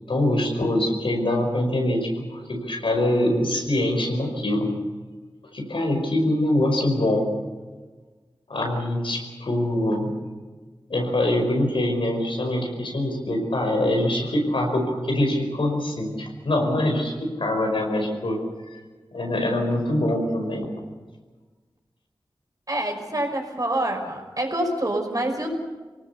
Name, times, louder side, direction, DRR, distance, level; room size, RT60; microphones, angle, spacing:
voice 1, 0.1-4.7 5.5-7.3 8.5-10.1 10.9-18.4 18.7-18.8 19.1-20.7, left 1 dB, 80° left, 2 dB, 5.3 m, -24 dB
voice 2, 22.7-25.6, right 1 dB, 45° right, 2 dB, 5.5 m, -26 dB
25.0 x 18.5 x 7.1 m, 1.3 s
cardioid pair, 45°, 9 cm